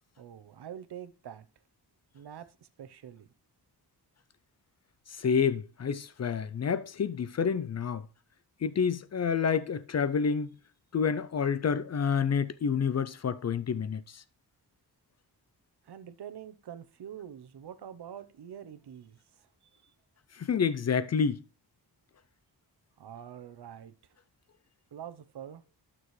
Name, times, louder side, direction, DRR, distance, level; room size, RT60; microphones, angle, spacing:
voice 1, 0.2-1.5 2.1-3.3 15.8-19.9 23.0-24.2 24.9-25.6, right 9 dB, 75° right, 0.8 m, -46 dB
voice 2, 5.2-8.1 8.6-10.5 10.9-14.2 20.4-21.4, left 6 dB, 45° left, 0.4 m, -28 dB
12.0 x 6.1 x 3.2 m
wide cardioid pair, 165°, 39 cm